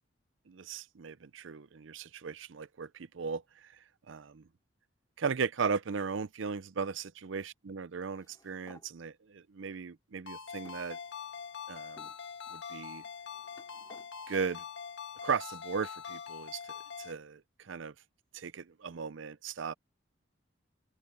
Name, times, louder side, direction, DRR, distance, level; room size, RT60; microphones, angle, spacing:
voice 1, 0.5-3.4 4.1-4.4 5.2-11.0 11.7-12.1 12.5-13.0 14.3-14.6 15.2-16.6 17.0-17.9 18.3-19.7, right 5 dB, 70° right, 0.6 m, -37 dB
sound 1, 8.0-8.9 9.7-9.8 10.6-11.5 12.0-12.2 13.0-14.1, left 1 dB, 20° left, 3.2 m, -59 dB
Ringtone, 10.3-17.1, left 7 dB, 65° left, 1.6 m, -44 dB
open air
head